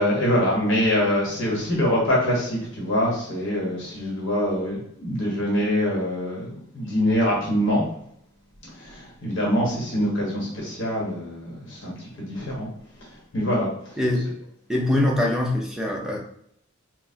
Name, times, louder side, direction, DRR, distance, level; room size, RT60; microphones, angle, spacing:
voice 1, 0.0-7.8 8.7-12.7 13.1-14.0, equal, 65° left, -4 dB, 1.1 m, -24 dB
voice 2, 14.0-14.3 14.7-16.2, left 1 dB, 5° right, -1 dB, 0.5 m, -23 dB
4.1 x 2.2 x 2.7 m, 0.70 s
head